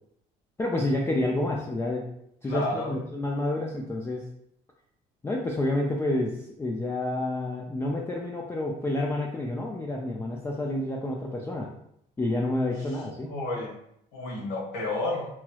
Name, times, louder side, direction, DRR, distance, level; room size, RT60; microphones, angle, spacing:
voice 1, 0.6-2.1 2.4-4.2 5.2-11.7 12.2-13.4, left 1 dB, 15° left, -2 dB, 0.3 m, -29 dB
voice 2, 2.4-2.9 12.9-13.7 14.1-15.3, left 2 dB, 75° left, -5 dB, 1.5 m, -31 dB
3.0 x 2.9 x 2.3 m, 0.74 s
cardioid pair, 110°, 17 cm